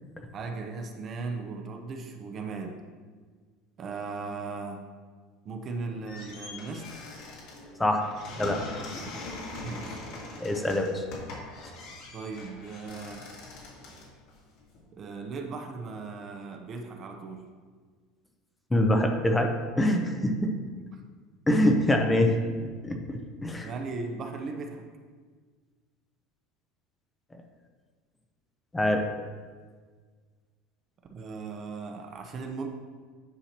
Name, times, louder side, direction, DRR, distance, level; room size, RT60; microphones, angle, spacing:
voice 1, 0.3-2.8 3.8-4.9 5.4-6.9 9.0-9.2 9.6-10.0 12.1-13.3 14.9-17.5 20.9-21.0 23.1-23.2 23.6-24.9 31.1-32.7, right 4 dB, 35° right, 4 dB, 0.7 m, -37 dB
sound 1, 5.7-14.8, left 3 dB, 60° left, 2.1 m, -42 dB
voice 2, 10.4-11.0 18.7-19.5 19.8-20.5 21.5-23.7 28.7-29.0, left 1 dB, 10° left, 3 dB, 0.6 m, -25 dB
9.9 x 5.7 x 2.9 m, 1.5 s
supercardioid pair, 145°, 0 cm